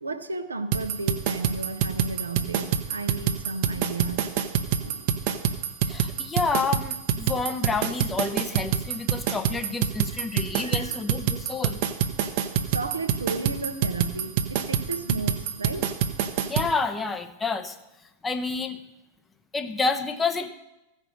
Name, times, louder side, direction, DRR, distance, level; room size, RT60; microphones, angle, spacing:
voice 1, 0.0-4.3 4.8-5.1 10.3-11.0 12.7-16.0, right 3 dB, 75° right, 9 dB, 0.7 m, -34 dB
sound 1, 0.7-16.7, right 9 dB, 45° right, 0.8 m, -26 dB
voice 2, 5.9-11.8 16.5-17.8 18.2-18.8 19.5-20.5, left 4 dB, 15° left, 8 dB, 0.7 m, -29 dB
15.0 x 5.4 x 6.4 m, 0.99 s
figure-of-eight pair, 90°, 0 cm